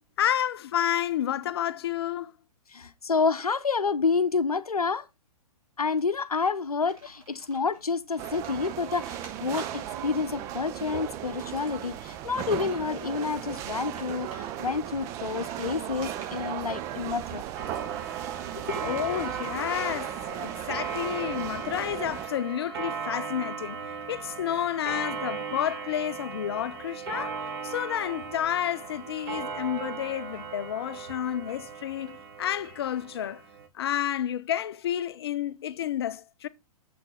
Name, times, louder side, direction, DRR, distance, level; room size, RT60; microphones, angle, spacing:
voice 1, 0.2-2.3 18.8-23.8 24.1-27.4 27.6-33.4 33.8-36.5, left 11 dB, 40° left, 0.5 m, -30 dB
voice 2, 2.7-5.1 5.8-17.4 18.6-18.8, left 5 dB, 75° left, 0.7 m, -29 dB
Computer keyboard, 6.7-19.6, right 2 dB, 60° right, 4.2 m, -53 dB
sound 1, 8.2-22.3, right 11 dB, 15° right, 0.4 m, -36 dB
Clock, 17.5-33.7, right 6 dB, 40° right, 1.4 m, -37 dB
7.4 x 5.9 x 4.1 m
figure-of-eight pair, 115°, 19 cm